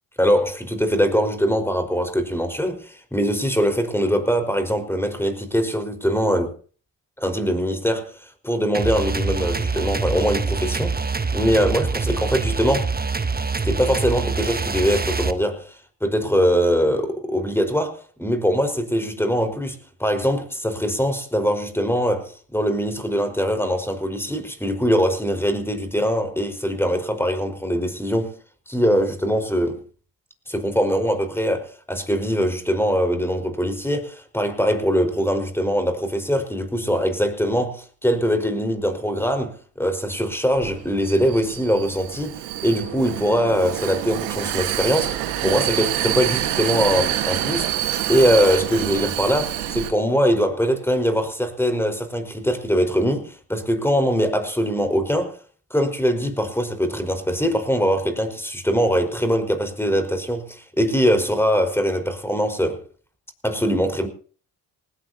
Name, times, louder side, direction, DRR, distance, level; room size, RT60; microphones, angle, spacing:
voice 1, 0.2-6.5 7.2-8.1 8.4-12.9 13.6-28.4 28.7-29.8 30.5-42.3 42.6-47.7 48.1-55.3 55.7-62.8 63.4-64.1, equal, 5° left, 5.0 m, -22 dB
sound 1, 8.7-15.3, right 4 dB, 20° right, 1.3 m, -25 dB
Vehicle, 40.5-49.9, right 12 dB, 85° right, 1.8 m, -27 dB
19.5 x 19.5 x 2.9 m
hypercardioid pair, 45°, 46 cm